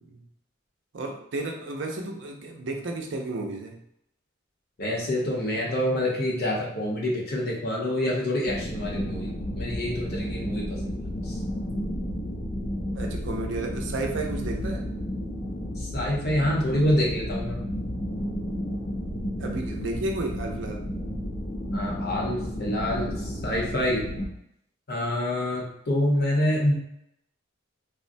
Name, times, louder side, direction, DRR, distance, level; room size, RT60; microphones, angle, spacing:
voice 1, 0.9-3.8 13.0-14.8 19.4-20.8, right 2 dB, 65° right, 2 dB, 0.5 m, -32 dB
voice 2, 4.8-11.4 15.8-17.6 21.7-24.0 24.9-26.7, left 1 dB, 55° left, -3 dB, 0.8 m, -27 dB
sound 1, 8.5-24.3, equal, 30° left, 0.5 m, -32 dB
3.6 x 2.1 x 2.6 m, 0.78 s
head